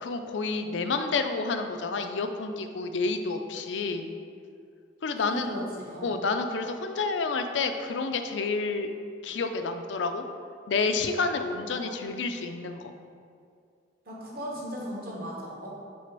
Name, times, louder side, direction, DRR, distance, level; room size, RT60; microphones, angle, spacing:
voice 1, 0.0-4.1 5.0-5.5 6.0-8.9 9.2-10.2 10.7-12.9, left 4 dB, 85° left, 7 dB, 0.5 m, -29 dB
voice 2, 5.2-6.2 11.7-12.3 14.1-15.7, equal, 55° right, -4 dB, 1.4 m, -37 dB
6.2 x 3.4 x 5.9 m, 2.3 s
head